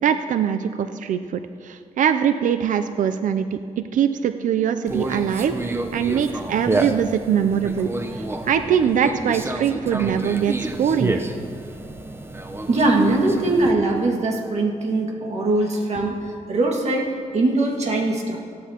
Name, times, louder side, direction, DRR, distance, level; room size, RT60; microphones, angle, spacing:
voice 1, 0.0-11.1, right 8 dB, 75° right, 9 dB, 0.5 m, -22 dB
Conversation, 4.9-13.7, right 2 dB, 20° right, 0.8 m, -29 dB
voice 2, 12.7-16.2 16.5-18.4, right 2 dB, 55° right, 0 dB, 1.9 m, -21 dB
16.5 x 13.0 x 2.9 m, 2.2 s
cardioid pair, 95°, 14 cm